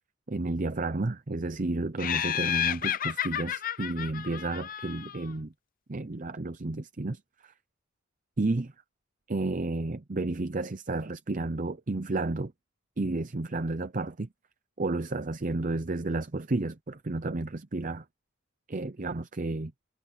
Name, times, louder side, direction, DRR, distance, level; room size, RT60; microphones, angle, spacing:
voice 1, 0.3-5.5 5.9-7.5 8.4-8.7 9.3-12.5 13.0-14.3 14.8-18.0 18.7-19.7, right 2 dB, 40° right, 0.7 m, -31 dB
Laughter, 2.0-5.3, left 10 dB, 40° left, 0.6 m, -31 dB
head